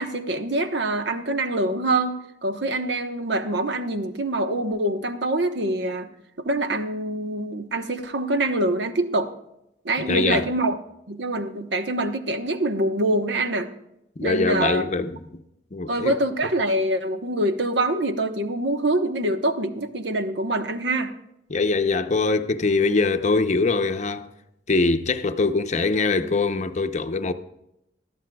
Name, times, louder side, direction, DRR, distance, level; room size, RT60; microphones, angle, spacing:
voice 1, 0.0-6.1 6.4-9.3 9.8-10.8 11.1-13.7 14.2-14.8 15.9-21.1, right 1 dB, 75° right, 1.1 m, -25 dB
voice 2, 10.1-10.5 14.2-15.4 15.7-16.2 21.5-24.3 24.7-27.3, left 3 dB, 40° left, 0.7 m, -23 dB
19.5 x 13.0 x 2.3 m
head